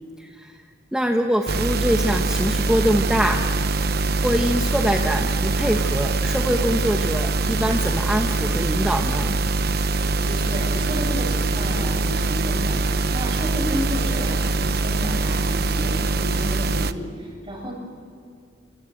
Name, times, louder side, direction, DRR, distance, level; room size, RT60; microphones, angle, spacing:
voice 1, 0.2-0.6 0.9-3.6 4.2-9.4, equal, 5° right, 3 dB, 1.2 m, -24 dB
sound 1, 1.5-16.9, right 3 dB, 60° right, 1.0 m, -23 dB
voice 2, 9.8-17.7, equal, 30° right, 1 dB, 7.4 m, -32 dB
27.5 x 24.0 x 7.9 m, 2.3 s
head